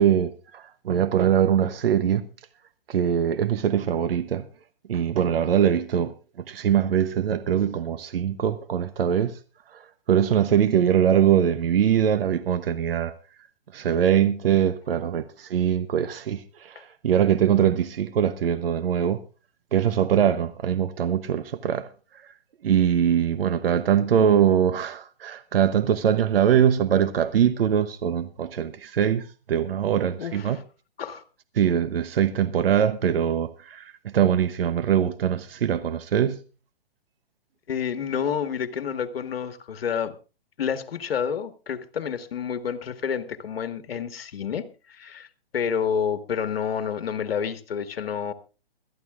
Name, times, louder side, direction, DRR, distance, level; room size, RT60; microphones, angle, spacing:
voice 1, 0.0-2.3 2.9-4.4 4.9-6.1 6.5-9.4 9.7-13.1 13.7-19.2 19.7-21.9 22.6-30.6 31.5-36.4, right 9 dB, 65° right, 1.0 m, -22 dB
voice 2, 30.2-30.6 31.0-31.2 37.7-40.1 40.6-45.3 45.5-48.3, left 7 dB, 70° left, 1.7 m, -29 dB
22.0 x 13.5 x 2.5 m
hypercardioid pair, 155°, 31 cm